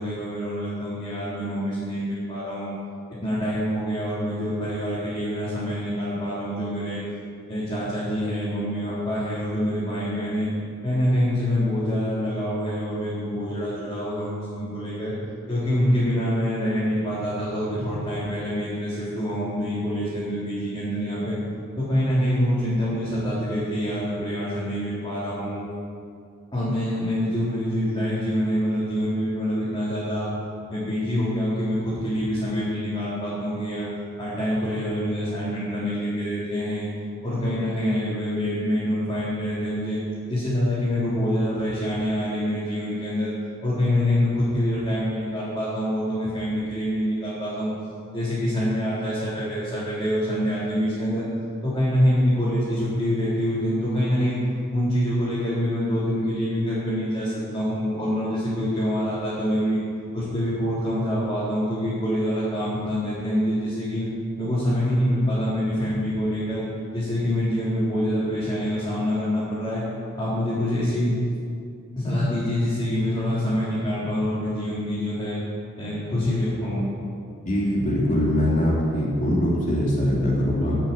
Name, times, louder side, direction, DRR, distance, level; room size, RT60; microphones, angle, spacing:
voice 1, 0.0-2.7 3.2-7.0 7.5-10.5 10.8-15.1 15.5-21.4 21.8-25.6 26.5-30.3 30.7-33.9 34.2-36.8 37.2-40.0 40.3-43.3 43.6-47.7 48.1-51.2 51.6-54.4 54.7-59.8 60.1-64.1 64.4-66.6 66.9-69.8 70.1-71.1 72.0-75.4 75.8-76.9, equal, 20° left, -13 dB, 4.0 m, -25 dB
voice 2, 77.5-80.8, equal, 35° left, -5 dB, 2.7 m, -22 dB
12.5 x 7.9 x 8.8 m, 2.4 s
head